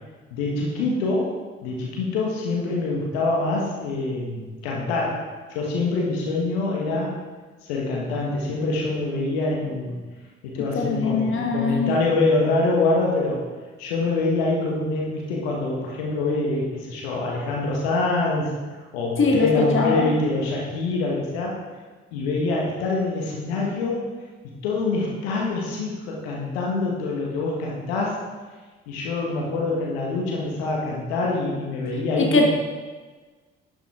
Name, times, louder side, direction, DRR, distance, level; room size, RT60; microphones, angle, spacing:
voice 1, 0.3-7.1 7.6-10.0 10.4-13.4 13.8-18.5 18.9-21.6 22.1-24.1 24.6-28.2 28.9-32.5, left 3 dB, 75° left, -2 dB, 1.8 m, -25 dB
voice 2, 10.7-11.9 19.2-20.1 32.2-32.5, left 3 dB, 40° left, 1 dB, 1.6 m, -21 dB
11.5 x 7.4 x 3.8 m, 1.4 s
figure-of-eight pair, 45°, 32 cm